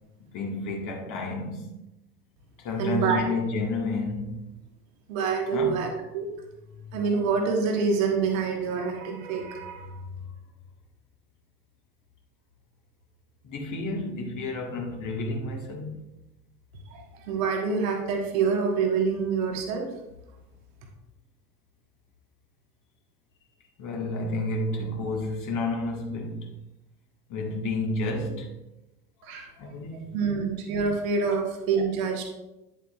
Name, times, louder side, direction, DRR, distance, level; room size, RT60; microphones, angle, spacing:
voice 1, 0.3-1.7 2.6-4.5 5.5-5.9 6.8-7.0 13.4-16.0 23.8-26.5 27.3-28.5 29.2-30.2 31.3-31.4, left 2 dB, 40° left, 1.7 m, -31 dB
voice 2, 2.8-3.2 5.1-5.9 6.1-6.3 6.9-10.0 16.9-19.9 29.2-29.5 30.1-32.2, right 5 dB, 55° right, 1.5 m, -26 dB
9.9 x 7.7 x 2.4 m
figure-of-eight pair, 70°, 47 cm